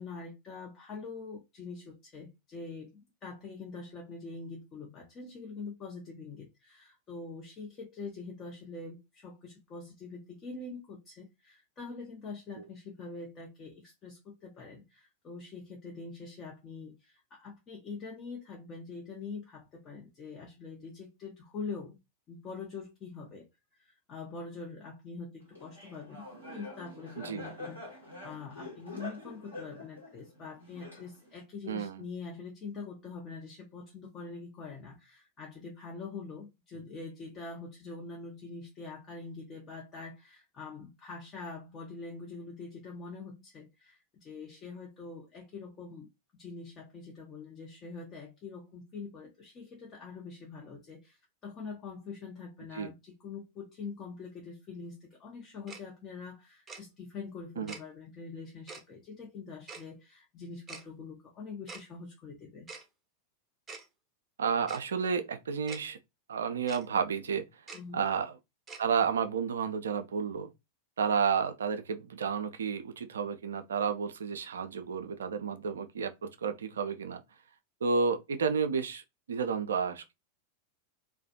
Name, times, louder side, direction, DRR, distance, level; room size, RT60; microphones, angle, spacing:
voice 1, 0.0-22.0 22.3-27.8 28.2-46.1 46.3-62.7 67.7-68.0, left 4 dB, 30° left, 0.6 m, -44 dB
Laughter, 25.6-31.4, left 2 dB, 90° left, 1.0 m, -46 dB
voice 2, 31.7-32.0 52.7-52.9 57.6-57.7 64.4-66.0 66.3-67.5 67.9-68.3 68.8-70.5 71.0-77.2 77.8-79.0 79.3-80.1, right 6 dB, 65° right, 0.3 m, -31 dB
Tick-tock, 55.7-55.8 56.7-56.8 57.7-57.8 58.7-58.8 59.7-59.8 60.7-60.8 61.7-61.8 62.7-62.8 63.7-63.9 64.7-64.8 65.7-65.8 66.7-66.9 67.7-67.8 68.7-68.8, right 4 dB, 20° right, 0.6 m, -44 dB
2.4 x 2.1 x 2.6 m
figure-of-eight pair, 90°, 0 cm